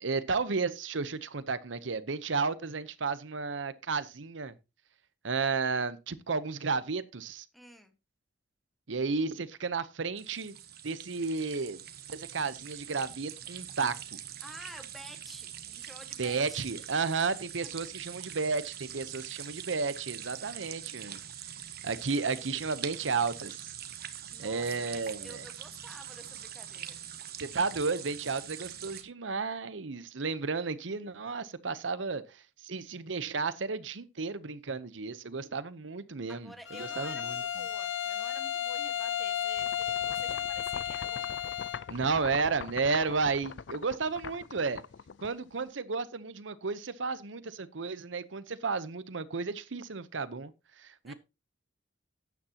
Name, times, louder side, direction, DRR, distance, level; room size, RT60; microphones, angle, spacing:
voice 1, 0.0-4.5 5.2-7.4 8.9-10.6 10.8-11.8 12.1-14.2 16.2-21.2 21.8-23.7 24.4-25.4 27.4-36.5 36.8-37.4 41.9-44.8 45.2-50.5 50.8-51.1, right 4 dB, 85° right, 0.9 m, -33 dB
voice 2, 7.5-7.9 14.4-16.7 24.3-27.0 36.3-41.4 51.0-51.1, equal, ahead, 1.5 m, -51 dB
sound 1, 10.2-29.0, right 10 dB, 55° right, 1.2 m, -44 dB
Bowed string instrument, 36.7-41.9, left 10 dB, 90° left, 1.0 m, -33 dB
sound 2, 39.6-45.7, left 6 dB, 70° left, 0.5 m, -43 dB
12.5 x 9.5 x 2.9 m
head